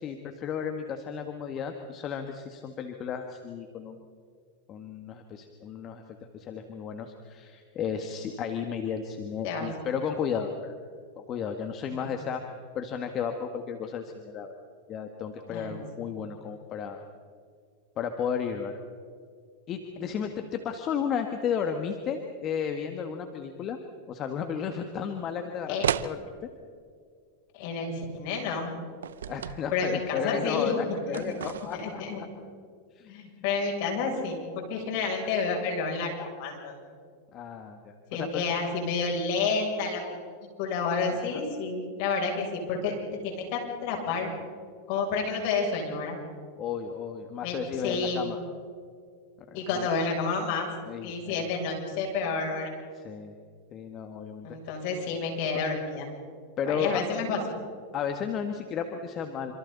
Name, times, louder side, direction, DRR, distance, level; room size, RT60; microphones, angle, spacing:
voice 1, 0.0-4.0 4.7-6.0 6.3-10.7 11.3-12.4 12.7-14.5 14.9-17.0 18.0-18.8 19.7-23.8 24.1-25.8 26.0-26.5 29.3-32.0 32.9-33.1 37.3-38.5 41.2-41.4 45.1-45.2 46.6-48.4 49.5-49.9 50.9-51.5 52.9-53.3 53.7-54.8 56.6-57.0 57.9-59.5, left 7 dB, 40° left, 5 dB, 2.0 m, -33 dB
voice 2, 15.5-15.8 16.0-16.1 25.7-25.9 27.5-28.7 29.7-31.2 31.7-32.2 33.1-36.7 38.1-40.0 40.6-42.9 43.2-44.3 44.9-46.2 47.4-47.6 47.8-48.4 49.5-50.7 51.0-52.7 54.4-56.1 56.7-57.4, left 4 dB, 60° left, 1 dB, 7.6 m, -30 dB
sound 1, 25.8-26.1 29.0-29.6 31.1-31.9, right 9 dB, 85° right, 0.8 m, -32 dB
27.5 x 27.0 x 4.2 m, 2.1 s
hypercardioid pair, 110°, 0 cm